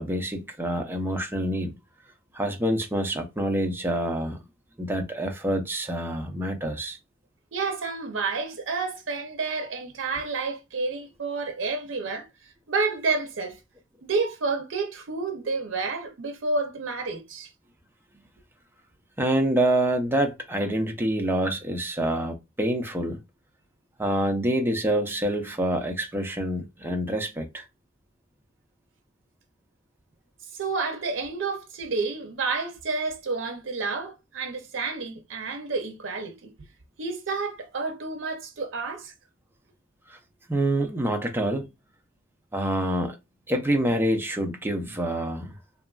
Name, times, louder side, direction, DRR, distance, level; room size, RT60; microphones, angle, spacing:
voice 1, 0.0-1.8 2.3-4.4 4.8-7.0 19.2-23.2 24.0-27.6 40.1-40.2 40.5-41.7 42.5-43.2 43.5-45.5, right 1 dB, 10° right, 0.4 m, -26 dB
voice 2, 7.5-13.6 14.0-17.5 30.5-36.5 37.0-39.1, right 4 dB, 75° right, 0.6 m, -30 dB
2.9 x 2.4 x 2.3 m
head